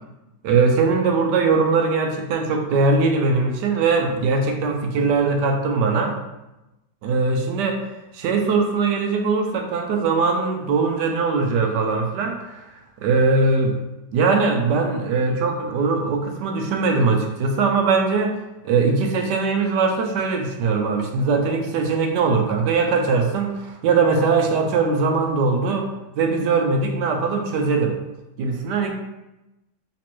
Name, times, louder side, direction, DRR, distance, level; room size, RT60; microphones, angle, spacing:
voice 1, 0.4-6.1 7.0-7.8 8.1-12.7 13.0-13.8 14.1-18.3 18.6-25.9 26.2-27.9 28.4-28.9, right 4 dB, 85° right, 3 dB, 1.2 m, -21 dB
3.4 x 3.0 x 3.0 m, 0.98 s
omnidirectional pair, 1.8 m